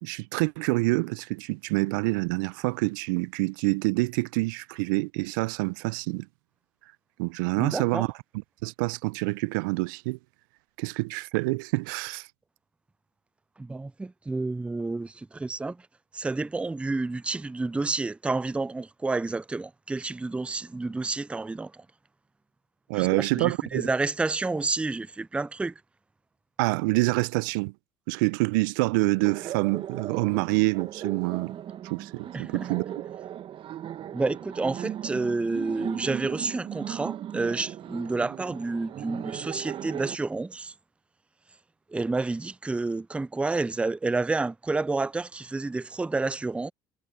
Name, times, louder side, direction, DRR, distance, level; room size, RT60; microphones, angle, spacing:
voice 1, 0.0-6.3 7.2-8.1 8.6-10.2 10.8-12.3 22.9-23.9 26.6-27.7 28.1-31.5 31.9-32.8, right 25 dB, 75° right, 0.6 m, -27 dB
voice 2, 7.6-8.0 13.6-15.9 16.1-21.9 22.9-25.7 32.3-32.7 34.1-40.7 41.9-46.7, right 3 dB, 10° right, 0.4 m, -30 dB
Laughter, 29.3-40.2, right 10 dB, 55° right, 1.6 m, -37 dB
hypercardioid pair, 60°, 11 cm